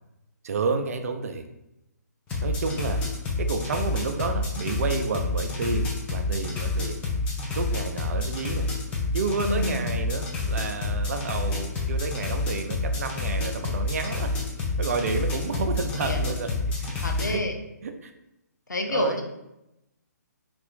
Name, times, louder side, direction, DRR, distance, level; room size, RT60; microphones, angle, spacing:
voice 1, 0.4-1.5 2.4-3.0 3.4-7.0 7.6-8.7 9.1-14.3 14.8-16.5 16.8-17.4 17.8-18.1 18.9-19.2, right 4 dB, 55° right, 6 dB, 0.5 m, -30 dB
sound 1, 2.3-17.3, left 3 dB, 15° left, 0.5 m, -28 dB
voice 2, 9.4-9.9 16.0-16.4 17.0-17.6 18.7-19.2, left 2 dB, 90° left, 4 dB, 0.6 m, -29 dB
3.3 x 2.5 x 3.6 m, 0.89 s
figure-of-eight pair, 140°, 10 cm